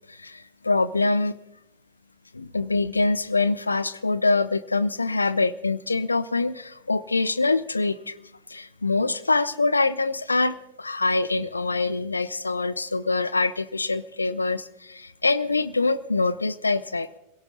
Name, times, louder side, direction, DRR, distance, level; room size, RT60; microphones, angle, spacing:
voice 1, 0.1-1.3 2.3-8.1 8.5-17.1, left 3 dB, 80° left, 15 dB, 0.6 m, -24 dB
27.0 x 17.0 x 3.0 m, 0.89 s
figure-of-eight pair, 90°, 0 cm